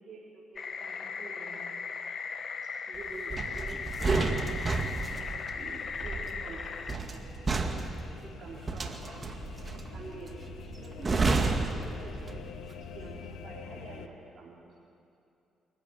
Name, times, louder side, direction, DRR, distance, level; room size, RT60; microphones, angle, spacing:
voice 1, 0.0-1.7 2.6-4.6 5.5-7.3 7.6-9.3 9.9-10.4 10.8-14.7, right 3 dB, 50° right, -6 dB, 3.8 m, -48 dB
sound 1, 0.6-7.0, left 5 dB, 50° left, 1.2 m, -38 dB
sound 2, 3.3-12.6 12.9-13.2, right 3 dB, 30° right, 1.9 m, -31 dB
sound 3, 3.6-14.1, left 7 dB, 85° left, 1.0 m, -47 dB
24.0 x 14.0 x 9.5 m, 2.7 s
cardioid pair, 90°, 0 cm